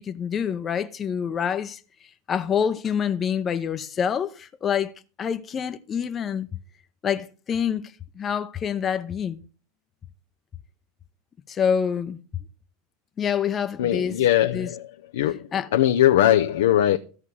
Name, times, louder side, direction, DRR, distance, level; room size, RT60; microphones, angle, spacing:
voice 1, 0.0-1.8 2.3-6.5 7.0-9.4 11.5-12.2 13.2-14.7 15.5-15.7, left 7 dB, 30° left, 0.8 m, -27 dB
voice 2, 13.8-14.9 15.1-17.0, left 12 dB, 75° left, 0.6 m, -20 dB
14.0 x 5.4 x 6.3 m
hypercardioid pair, 95°, 0 cm